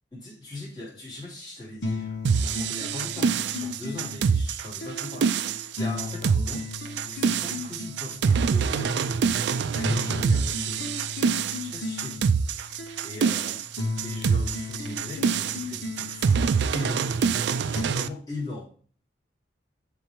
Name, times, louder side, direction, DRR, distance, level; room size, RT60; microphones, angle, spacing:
voice 1, 0.1-6.7 7.0-9.0 9.7-10.9 11.6-12.3 13.0-13.6 13.9-18.6, left 2 dB, 20° left, -8 dB, 2.6 m, -40 dB
sound 1, 1.8-17.8, left 3 dB, 65° left, 0.9 m, -36 dB
sound 2, 2.2-18.1, right 6 dB, 65° right, 0.3 m, -25 dB
10.0 x 3.4 x 3.2 m, 0.43 s
head